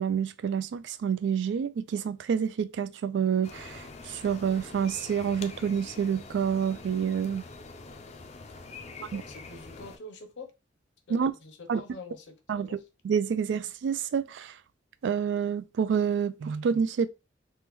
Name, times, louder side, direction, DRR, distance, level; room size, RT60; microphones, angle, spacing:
voice 1, 0.0-7.4 9.1-9.2 11.1-11.3 11.7-11.8 12.5-12.7 13.0-14.6 15.0-17.1, right 7 dB, 70° right, 0.3 m, -28 dB
sound 1, 3.4-10.0, left 3 dB, 35° left, 0.4 m, -45 dB
voice 2, 8.8-10.5 11.1-12.8, left 2 dB, 75° left, 0.6 m, -46 dB
3.4 x 2.2 x 3.0 m
head